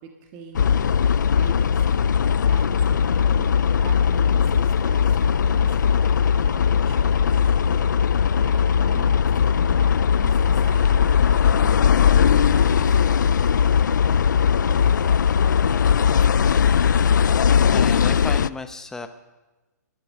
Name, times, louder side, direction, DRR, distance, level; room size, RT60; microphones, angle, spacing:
voice 1, 0.2-0.9 1.4-2.0 2.5-3.5 3.8-9.2 9.5-9.9 10.2-11.7 12.2-12.9, right 5 dB, 30° right, 3 dB, 1.6 m, -43 dB
sound 1, 0.5-18.5, left 7 dB, 80° left, 0.4 m, -19 dB
voice 2, 17.7-19.1, left 3 dB, 5° left, 8 dB, 0.8 m, -34 dB
17.5 x 12.0 x 5.5 m, 1.1 s
hypercardioid pair, 150°, 10 cm